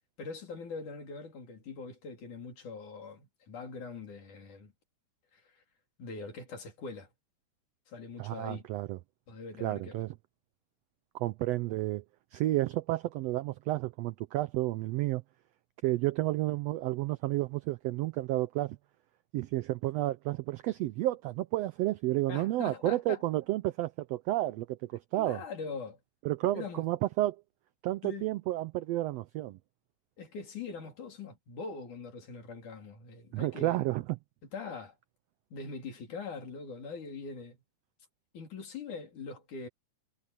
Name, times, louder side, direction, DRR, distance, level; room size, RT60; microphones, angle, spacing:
voice 1, 0.2-4.7 5.3-5.6 6.0-7.1 7.9-8.6 9.3-10.1 22.3-23.2 25.2-26.0 26.5-26.9 28.0-28.3 30.2-33.8 34.5-34.9 35.5-37.6 38.3-39.7, left 4 dB, 75° left, 5.2 m, -42 dB
voice 2, 8.2-9.0 9.6-10.1 11.1-12.0 12.3-15.2 15.8-18.8 19.3-25.4 26.2-27.4 27.8-29.6 33.3-34.2, right 16 dB, 80° right, 1.4 m, -31 dB
omnidirectional pair, 3.5 m